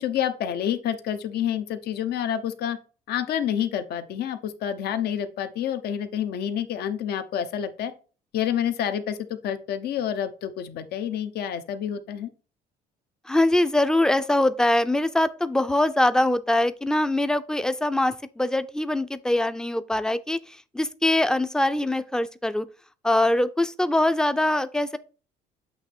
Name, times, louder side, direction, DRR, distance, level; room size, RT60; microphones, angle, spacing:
voice 1, 0.0-2.8 3.1-7.9 8.3-9.2 9.4-12.3, left 9 dB, 70° left, 0.9 m, -28 dB
voice 2, 13.3-22.7 23.0-25.0, left 1 dB, 5° left, 0.5 m, -23 dB
8.1 x 3.0 x 4.3 m
cardioid pair, 110°, 17 cm